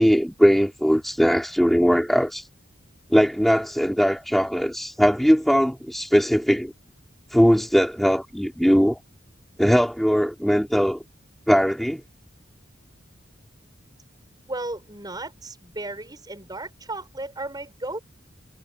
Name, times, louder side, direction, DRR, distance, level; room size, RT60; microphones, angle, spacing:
voice 1, 0.0-2.5 3.1-6.7 7.3-9.0 9.6-11.0 11.5-12.0, equal, ahead, 4.3 m, -20 dB
voice 2, 14.5-18.0, right 2 dB, 20° right, 7.4 m, -34 dB
head